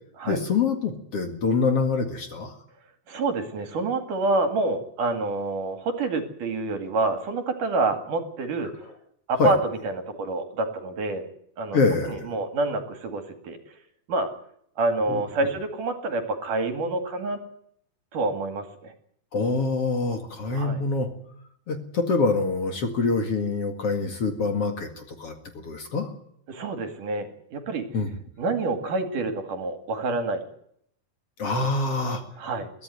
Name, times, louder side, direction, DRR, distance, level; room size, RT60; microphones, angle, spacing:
voice 1, 0.3-2.5 9.4-9.5 11.7-12.2 15.1-15.2 19.3-21.1 21.7-25.3 25.6-26.1 27.9-28.1 31.4-32.2, left 4 dB, 45° left, 6 dB, 2.6 m, -25 dB
voice 2, 3.1-8.7 9.3-11.3 11.6-11.8 12.0-13.6 14.1-14.3 14.8-17.4 18.1-18.9 20.5-20.8 26.5-27.9 28.4-30.4 32.4-32.7, right 3 dB, 65° right, 7 dB, 3.7 m, -27 dB
22.5 x 14.0 x 9.3 m, 0.70 s
omnidirectional pair, 4.1 m